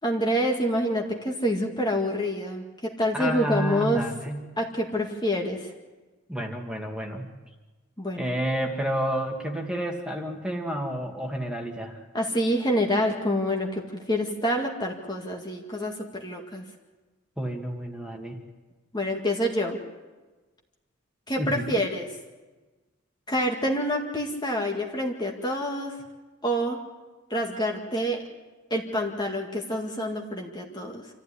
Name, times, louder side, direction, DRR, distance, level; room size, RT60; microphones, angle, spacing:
voice 1, 0.0-4.0 4.6-5.7 8.0-8.3 12.1-16.6 18.9-19.8 21.3-22.1 23.3-26.0 26.4-26.8 27.3-28.2 28.7-31.1, equal, 20° left, 1 dB, 1.9 m, -27 dB
voice 2, 3.1-4.5 6.3-7.3 8.2-12.0 17.4-18.4 21.4-21.8, right 1 dB, 5° right, 1 dB, 2.2 m, -30 dB
27.0 x 14.5 x 9.9 m, 1.2 s
head